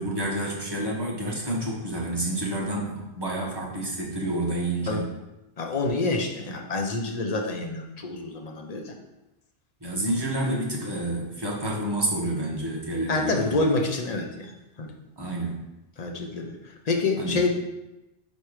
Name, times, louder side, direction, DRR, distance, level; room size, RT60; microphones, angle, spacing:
voice 1, 0.0-5.0 9.8-13.6 15.2-15.5 17.2-17.4, right 1 dB, 20° right, -3 dB, 1.3 m, -29 dB
voice 2, 5.6-8.9 13.1-14.5 14.8-14.9 16.0-16.5 16.8-17.5, left 3 dB, 40° left, 2 dB, 0.8 m, -27 dB
4.8 x 4.5 x 4.9 m, 0.98 s
omnidirectional pair, 1.2 m